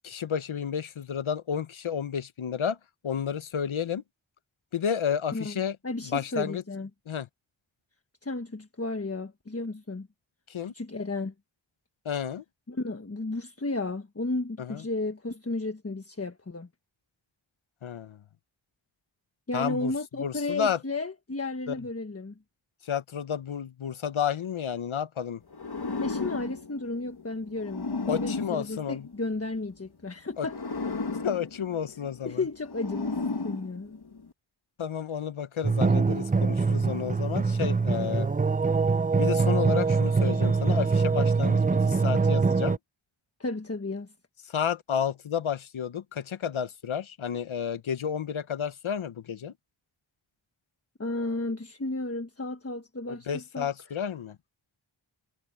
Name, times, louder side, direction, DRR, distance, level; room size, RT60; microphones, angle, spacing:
voice 1, 0.0-2.8 3.0-4.0 4.7-5.8 6.0-6.6 7.1-7.3 10.5-10.7 12.0-12.4 14.6-14.8 17.8-18.2 19.5-19.9 20.2-20.8 21.7-21.8 22.8-25.4 28.1-29.1 30.4-30.5 31.2-32.4 34.8-38.3 39.2-42.8 44.5-49.5 53.3-54.4, left 8 dB, 85° left, 0.9 m, -31 dB
voice 2, 5.3-6.9 8.2-10.1 10.7-11.3 12.7-16.7 19.5-22.3 26.0-30.6 32.2-34.0 43.4-44.1 51.0-53.7, left 2 dB, 30° left, 1.4 m, -33 dB
sound 1, 25.5-29.7 30.4-34.3, left 3 dB, 55° left, 1.8 m, -35 dB
sound 2, 35.6-42.8, right 4 dB, 20° right, 0.4 m, -24 dB
wide cardioid pair, 50°, 47 cm